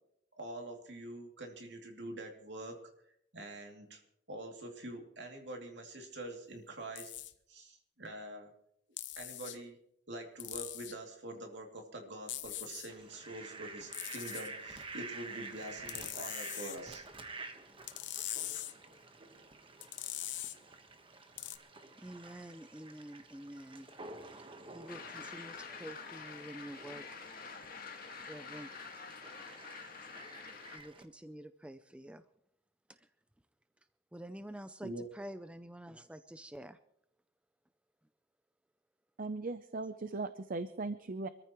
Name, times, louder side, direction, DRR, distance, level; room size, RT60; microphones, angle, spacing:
voice 1, 0.4-2.8 3.3-4.0 4.3-7.1 7.5-8.5 9.2-9.8 10.1-17.1 34.8-35.1, right 1 dB, 65° right, 2 dB, 2.7 m, -45 dB
sound 1, 7.0-7.3 9.0-9.6 10.4-11.0 12.3-12.9 13.9-14.5 15.9-16.8 17.9-18.7 19.8-20.6 21.4-21.6, left 13 dB, 70° left, 0.9 m, -41 dB
Fowl, 12.9-31.0, right 3 dB, 30° right, 1.3 m, -50 dB
voice 2, 22.0-23.9 24.3-24.4 24.7-27.0 28.3-28.7 30.7-32.2 32.9-33.1 34.1-36.8, right 1 dB, 5° right, 11 dB, 0.4 m, -48 dB
sound 2, 24.9-30.8, left 5 dB, 50° left, 1.8 m, -48 dB
voice 3, 39.2-41.3, right 3 dB, 50° right, 11 dB, 0.6 m, -38 dB
25.0 x 14.0 x 3.1 m, 0.74 s
head